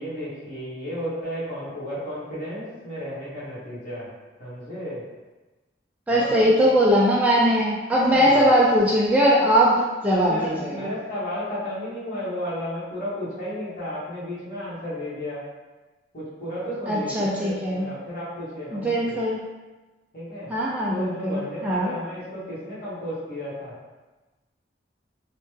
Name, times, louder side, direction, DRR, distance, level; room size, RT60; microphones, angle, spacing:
voice 1, 0.0-4.1 4.4-5.0 6.1-6.5 8.1-8.5 10.2-15.4 16.1-19.2 20.1-20.5 20.9-23.7, equal, 50° left, -10 dB, 1.4 m, -33 dB
voice 2, 6.1-10.9 16.9-17.9 18.7-19.4 20.5-21.9, equal, 10° right, -5 dB, 0.3 m, -20 dB
3.1 x 2.1 x 3.2 m, 1.2 s
head